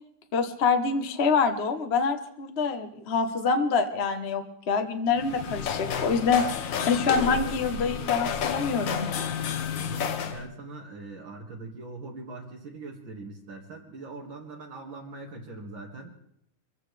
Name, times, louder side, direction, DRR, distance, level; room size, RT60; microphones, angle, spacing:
voice 1, 0.3-9.1, left 5 dB, 40° left, 7 dB, 1.1 m, -26 dB
sound 1, 5.1-10.4, left 7 dB, 75° left, 1.7 m, -31 dB
voice 2, 9.7-16.1, right 3 dB, 85° right, -2 dB, 2.8 m, -41 dB
25.0 x 15.0 x 3.3 m, 0.72 s
omnidirectional pair, 2.1 m